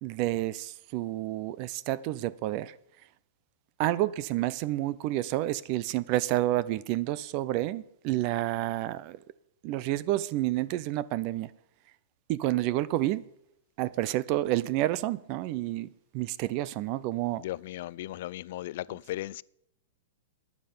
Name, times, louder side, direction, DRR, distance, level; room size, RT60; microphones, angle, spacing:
voice 1, 0.0-2.7 3.8-9.2 9.6-11.5 12.3-13.2 13.8-15.9 16.1-17.4, right 15 dB, 35° right, 0.5 m, -29 dB
voice 2, 17.4-19.4, left 15 dB, 50° left, 0.4 m, -36 dB
13.0 x 9.7 x 6.8 m
supercardioid pair, 165°, 0 cm